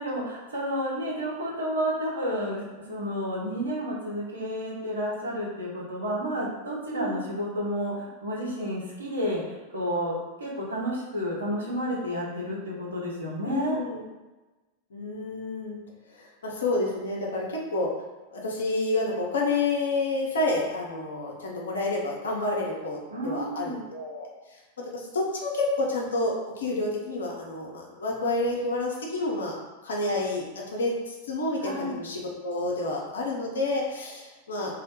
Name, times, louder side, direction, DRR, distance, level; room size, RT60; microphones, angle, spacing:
voice 1, 0.0-13.8 23.1-23.8 31.6-31.9, equal, 75° right, -5 dB, 0.7 m, -31 dB
voice 2, 6.9-7.2 13.4-14.0 14.9-15.8 16.2-17.9 18.3-24.3 24.9-29.6 29.8-30.4 30.7-34.7, left 2 dB, 65° left, -2 dB, 0.5 m, -29 dB
2.1 x 2.1 x 2.8 m, 1.2 s
figure-of-eight pair, 90°, 0 cm